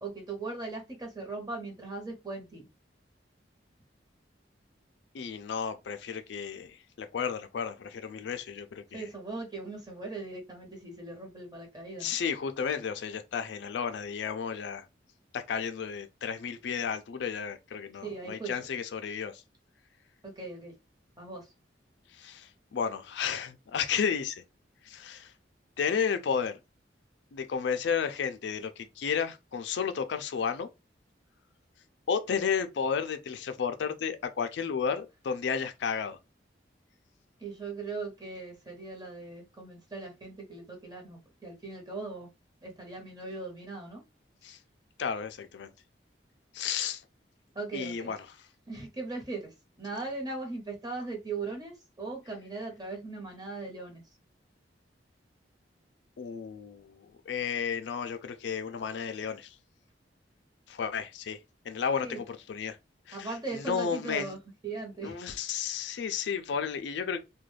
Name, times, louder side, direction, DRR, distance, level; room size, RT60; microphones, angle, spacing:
voice 1, 0.0-2.7 8.9-12.1 18.0-18.5 20.2-20.7 21.2-21.5 37.4-42.3 42.6-44.0 47.5-48.1 48.7-54.0 62.0-62.2 63.1-64.4 64.6-65.2, right 3 dB, 20° right, 0.8 m, -39 dB
voice 2, 5.1-9.1 12.0-14.9 15.3-19.4 22.1-24.4 24.8-25.3 25.8-26.6 27.3-30.7 32.1-36.2 44.4-44.6 45.0-45.7 46.5-47.0 47.7-48.2 56.2-59.6 60.7-61.4 61.6-62.8 63.1-64.4 65.0-67.2, left 6 dB, 70° left, 0.4 m, -32 dB
2.4 x 2.2 x 3.2 m
head